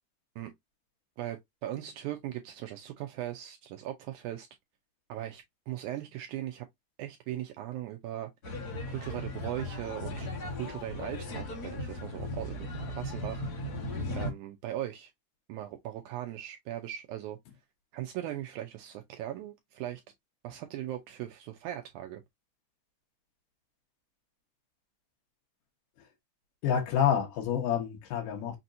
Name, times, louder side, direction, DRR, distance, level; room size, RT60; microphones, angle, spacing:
voice 1, 1.2-4.5 5.1-6.7 7.0-8.3 8.9-13.4 14.1-15.1 15.5-17.4 17.9-20.0 20.4-22.2, right 13 dB, 80° right, 1.9 m, -39 dB
sound 1, 8.4-14.3, left 1 dB, 55° left, 1.0 m, -37 dB
voice 2, 26.6-28.6, left 8 dB, 80° left, 2.7 m, -28 dB
6.0 x 2.8 x 2.5 m
omnidirectional pair, 3.7 m